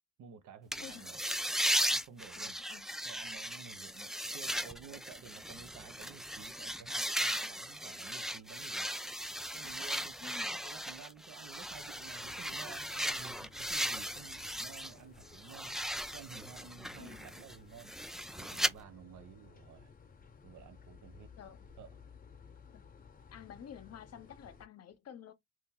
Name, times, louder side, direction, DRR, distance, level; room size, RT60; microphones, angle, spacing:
voice 1, 0.2-1.2 1.9-2.6 3.0-8.9 9.5-15.7 16.1-17.9 18.4-19.9 20.4-21.3 21.8-21.9, right 7 dB, 75° right, 1.0 m, -53 dB
sound 1, 0.7-14.9 15.3-18.7, equal, ahead, 0.3 m, -37 dB
voice 2, 0.8-1.1 2.4-2.9 10.2-10.6 17.0-17.3 21.4-21.7 22.7-22.8 23.3-25.3, left 8 dB, 55° left, 0.8 m, -51 dB
sound 2, 11.7-24.7, left 6 dB, 30° left, 0.9 m, -57 dB
2.9 x 2.9 x 3.8 m
cardioid pair, 90°, 30 cm